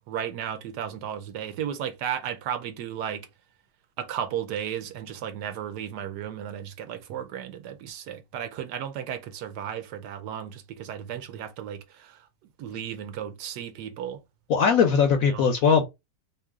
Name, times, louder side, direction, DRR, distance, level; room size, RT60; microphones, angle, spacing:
voice 1, 0.1-3.3 4.0-12.3 12.6-14.2 15.2-15.5, right 9 dB, 70° right, 1.1 m, -34 dB
voice 2, 14.5-15.8, left 6 dB, 70° left, 0.8 m, -20 dB
3.0 x 2.7 x 3.5 m
omnidirectional pair, 1.9 m